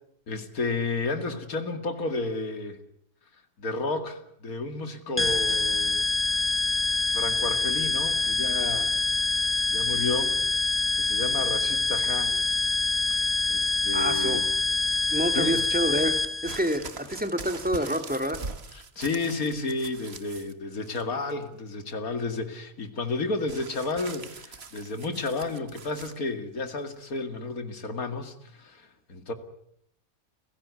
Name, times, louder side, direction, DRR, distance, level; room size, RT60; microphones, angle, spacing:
voice 1, 0.3-2.8 3.6-6.0 7.1-9.0 9.7-10.4 11.0-12.4 13.1-14.5 15.0-15.6 18.7-29.3, left 3 dB, 75° left, 2.8 m, -32 dB
sound 1, 5.2-16.6, left 3 dB, 10° left, 0.9 m, -26 dB
voice 2, 13.9-14.4 15.1-18.4, equal, 5° right, 2.1 m, -28 dB
sound 2, 16.5-20.5 20.8-21.4 23.5-26.2 27.0-27.1, right 4 dB, 45° right, 1.7 m, -42 dB
30.0 x 16.5 x 9.6 m
omnidirectional pair, 1.5 m